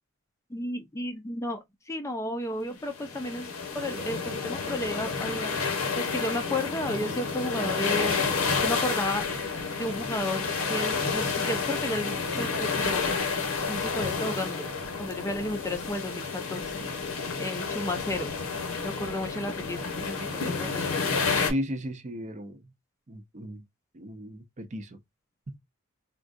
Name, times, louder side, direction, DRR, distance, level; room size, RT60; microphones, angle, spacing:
voice 1, 0.5-1.6 1.9-5.6 6.0-9.2 9.8-13.0 13.7-14.7 15.0-16.9 17.4-18.3 18.8-21.0, left 1 dB, 15° left, 0.4 m, -33 dB
sound 1, 2.9-21.5, left 4 dB, 80° left, 1.0 m, -30 dB
voice 2, 21.4-22.7 23.1-23.6 23.9-25.0 25.5-25.6, equal, 35° right, 0.6 m, -35 dB
3.7 x 2.3 x 2.5 m
head